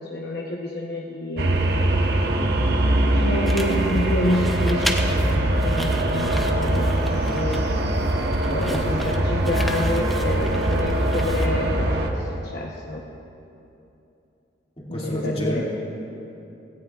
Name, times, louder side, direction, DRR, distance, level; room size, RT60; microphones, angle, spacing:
voice 1, 0.0-1.5 3.1-7.9 8.4-13.0 14.9-15.6, left 1 dB, 60° left, -2 dB, 1.0 m, -28 dB
sound 1, 1.4-12.1, right 1 dB, 60° right, 1.1 m, -22 dB
sound 2, 3.4-11.8, equal, ahead, 0.8 m, -35 dB
voice 2, 14.9-15.6, equal, 35° left, -4 dB, 2.5 m, -29 dB
17.5 x 16.5 x 2.4 m, 2.8 s
head